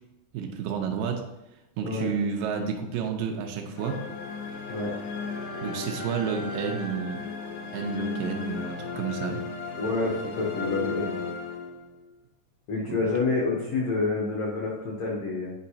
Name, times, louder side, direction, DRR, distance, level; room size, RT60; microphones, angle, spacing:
voice 1, 0.3-1.3 1.8-4.0 5.6-7.2 7.7-9.4 12.9-13.0, right 6 dB, 80° right, 3 dB, 2.3 m, -30 dB
sound 1, 3.8-12.1, left 4 dB, 80° left, 2.5 m, -35 dB
voice 2, 9.7-11.2 12.7-15.5, left 3 dB, 65° left, -3 dB, 1.7 m, -28 dB
9.6 x 5.1 x 2.8 m, 0.93 s
omnidirectional pair, 4.1 m